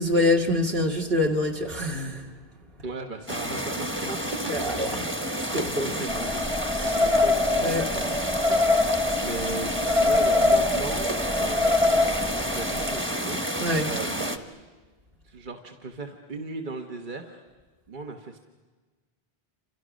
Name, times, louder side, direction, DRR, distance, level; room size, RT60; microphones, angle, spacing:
voice 1, 0.0-2.3 4.5-5.0 5.5-6.0 6.7-7.0 7.6-7.9 13.6-13.9, left 1 dB, 70° right, 2 dB, 2.4 m, -25 dB
voice 2, 2.8-4.2 4.9-5.1 5.8-6.4 6.8-11.1 11.4-14.6 15.2-17.4 17.9-18.4, right 3 dB, 50° right, 4 dB, 1.4 m, -37 dB
sound 1, 3.3-14.4, equal, 10° right, 1.3 m, -30 dB
sound 2, 6.1-13.0, left 2 dB, 35° right, 1.7 m, -24 dB
29.0 x 26.5 x 6.3 m, 1.3 s
omnidirectional pair, 1.0 m